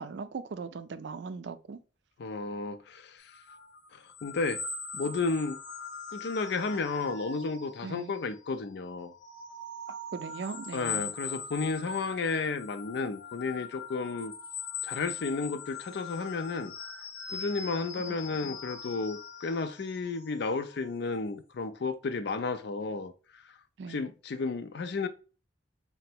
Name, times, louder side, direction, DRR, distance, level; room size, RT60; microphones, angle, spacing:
voice 1, 0.0-1.8 7.8-8.1 9.9-11.1 18.1-18.2 18.4-18.6 23.8-24.1, right 4 dB, 70° right, 0.4 m, -39 dB
voice 2, 2.2-3.3 3.9-4.6 4.9-5.6 6.1-9.1 10.7-14.3 14.8-16.7 17.3-23.1 23.9-25.1, left 4 dB, 65° left, 0.4 m, -32 dB
sound 1, 3.3-8.5 8.9-21.2, left 4 dB, 90° left, 0.9 m, -42 dB
3.8 x 2.2 x 4.3 m
head